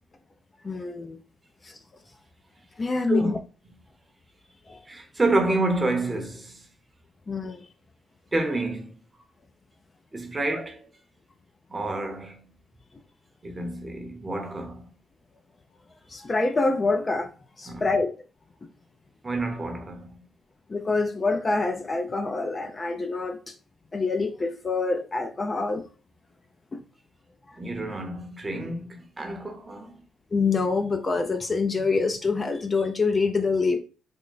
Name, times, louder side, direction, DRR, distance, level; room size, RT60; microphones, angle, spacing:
voice 1, 0.6-1.2 1.6-1.8 2.8-3.4 4.7-4.8 7.3-7.7 10.5-10.6 16.1-17.3 17.6-18.1 20.7-23.5 23.9-25.8 26.7-26.8 27.5-27.6 30.3-33.8, left 3 dB, 30° left, 0.5 m, -26 dB
voice 2, 4.9-6.7 8.3-8.9 10.1-10.9 11.7-12.5 13.4-14.9 17.7-17.8 19.2-20.2 27.6-30.0, right 2 dB, 25° right, 0.8 m, -29 dB
3.6 x 2.2 x 3.8 m
cardioid pair, 90°, 0 cm